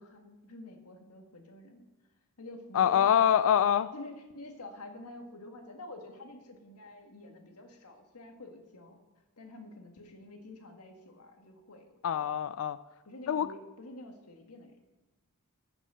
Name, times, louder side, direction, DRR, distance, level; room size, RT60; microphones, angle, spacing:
voice 1, 0.0-1.9 2.4-3.2 3.9-9.0 9.4-11.9 12.2-12.4 13.0-14.8, left 2 dB, 85° left, 4 dB, 1.7 m, -48 dB
voice 2, 2.7-3.9 12.0-12.8 13.3-13.5, left 9 dB, 65° left, 14 dB, 0.3 m, -25 dB
14.5 x 6.2 x 5.7 m, 1.1 s
head